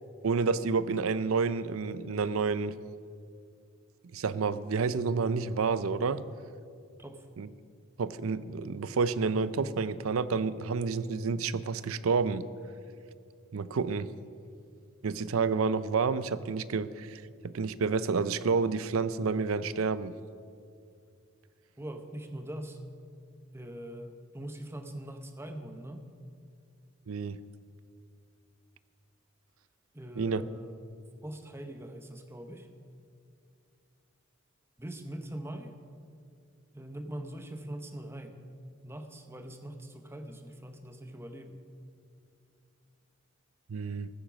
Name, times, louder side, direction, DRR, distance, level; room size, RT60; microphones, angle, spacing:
voice 1, 0.2-2.7 4.1-6.3 7.4-7.5 8.0-12.5 13.5-14.1 15.0-20.1 27.1-27.4 30.2-30.4 43.7-44.1, right 5 dB, 80° right, 16 dB, 0.5 m, -29 dB
voice 2, 21.8-22.8 23.5-26.1 29.9-30.7 31.2-32.7 34.8-35.8 36.7-38.4 38.8-41.6, right 1 dB, 10° right, 7 dB, 0.8 m, -42 dB
15.0 x 8.9 x 6.2 m, 2.4 s
head